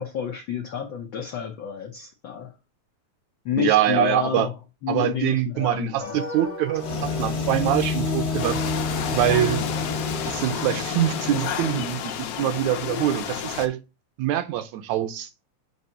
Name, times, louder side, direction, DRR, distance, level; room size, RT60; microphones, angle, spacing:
voice 1, 0.0-2.5 3.4-4.5 4.8-6.2, left 9 dB, 85° left, 1.0 m, -29 dB
voice 2, 3.6-4.5 4.9-8.6 9.1-9.7 10.3-13.8 14.2-15.3, right 12 dB, 80° right, 2.0 m, -24 dB
sound 1, 6.0-10.8, equal, 30° left, 0.9 m, -36 dB
sound 2, 6.8-12.1, left 4 dB, 50° left, 1.1 m, -29 dB
sound 3, 8.4-13.7, left 9 dB, 70° left, 1.5 m, -31 dB
7.8 x 2.9 x 5.6 m
omnidirectional pair, 3.3 m